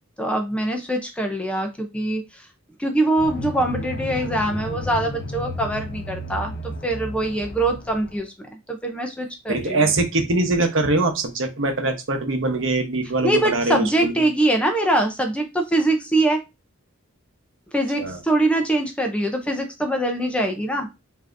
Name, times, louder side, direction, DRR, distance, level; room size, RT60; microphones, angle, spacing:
voice 1, 0.2-2.5 2.8-6.5 6.8-8.3 8.7-9.8 13.2-16.4 17.7-20.9, right 1 dB, 5° left, 4 dB, 0.5 m, -23 dB
sound 1, 3.2-8.2, left 1 dB, 50° left, 0.7 m, -33 dB
voice 2, 9.5-14.2 18.0-18.2, right 2 dB, 65° right, 4 dB, 0.9 m, -22 dB
5.4 x 2.7 x 2.5 m, 0.24 s
head